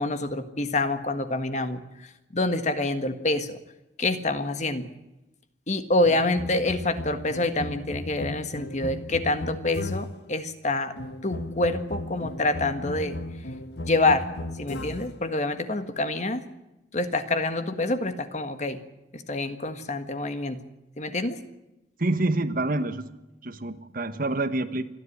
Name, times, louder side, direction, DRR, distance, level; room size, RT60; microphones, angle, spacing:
voice 1, 0.0-3.6 4.0-4.9 5.7-10.9 11.2-13.2 13.8-14.3 14.6-16.4 16.9-18.8 19.1-20.6 21.0-21.4, left 2 dB, 40° left, 9 dB, 1.6 m, -27 dB
sound 1, 6.0-10.3 11.0-15.2, left 1 dB, 65° left, 1.3 m, -36 dB
voice 2, 22.0-23.0 23.4-25.0, right 2 dB, 50° right, 11 dB, 1.3 m, -27 dB
27.0 x 11.0 x 9.8 m, 0.97 s
head